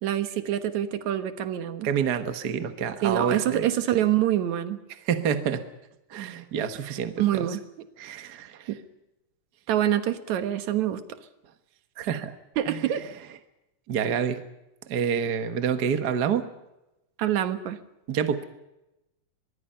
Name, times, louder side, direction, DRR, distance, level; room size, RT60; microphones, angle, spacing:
voice 1, 0.0-1.9 3.0-4.8 7.2-7.6 8.7-8.8 9.7-11.0 12.6-13.0 17.2-17.8, right 11 dB, 75° right, 10 dB, 2.6 m, -25 dB
voice 2, 1.8-3.7 5.1-5.6 6.1-7.5 8.0-8.7 12.0-12.3 12.7-12.8 13.9-14.4 14.9-16.5 18.1-18.4, right 7 dB, 50° right, 9 dB, 1.2 m, -28 dB
24.5 x 21.5 x 5.6 m, 0.93 s
omnidirectional pair, 3.4 m